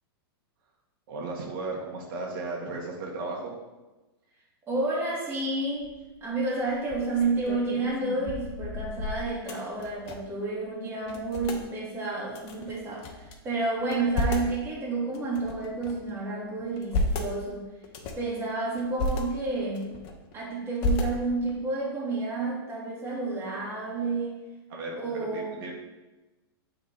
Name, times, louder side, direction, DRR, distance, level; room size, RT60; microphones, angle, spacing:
voice 1, 1.1-3.5 24.7-25.0 25.3-25.7, right 3 dB, 60° right, -1 dB, 1.5 m, -35 dB
voice 2, 4.7-5.9 6.2-17.7 18.2-20.0 20.3-24.4 24.9-25.6, right 3 dB, 20° right, -4 dB, 2.0 m, -30 dB
sound 1, 5.8-6.2 6.7-10.4 10.7-10.8 11.0-11.6 12.3-13.4 13.8-14.6 15.1-16.1 16.6-17.3 17.8-18.3 18.8-19.2 19.7-20.3 20.8-21.5, left 2 dB, 45° left, 1.1 m, -32 dB
8.5 x 3.8 x 4.1 m, 1.1 s
hypercardioid pair, 135°, 13 cm